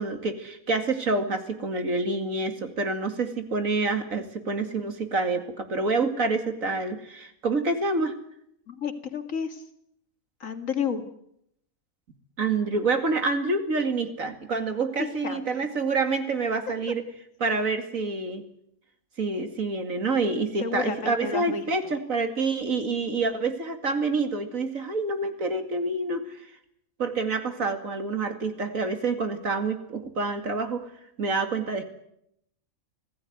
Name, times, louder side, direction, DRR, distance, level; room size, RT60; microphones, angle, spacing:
voice 1, 0.0-8.1 12.4-17.0 17.4-18.4 19.2-26.4 27.0-30.9 31.2-31.8, right 3 dB, 70° right, 7 dB, 2.8 m, -27 dB
voice 2, 8.7-9.7 10.4-11.0 15.0-15.7 20.6-21.9, left 6 dB, 65° left, 8 dB, 2.4 m, -32 dB
25.5 x 16.5 x 9.4 m, 0.76 s
omnidirectional pair, 1.5 m